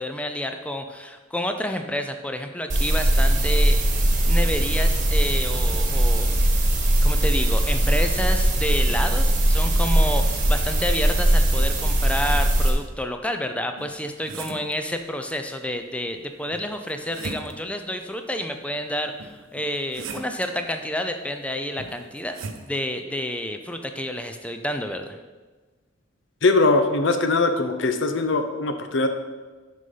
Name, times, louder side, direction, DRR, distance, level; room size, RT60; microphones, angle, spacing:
voice 1, 0.0-6.3 7.0-22.4 22.7-25.2, left 1 dB, 5° left, 6 dB, 0.4 m, -29 dB
sound 1, 2.7-12.7, right 1 dB, 35° right, 1.3 m, -20 dB
sound 2, 13.8-14.8 16.5-17.8 19.2-20.5 21.8-22.7, right 4 dB, 70° right, 0.7 m, -38 dB
voice 2, 26.4-29.1, left 3 dB, 60° left, 7 dB, 0.7 m, -21 dB
6.3 x 5.4 x 5.7 m, 1.3 s
head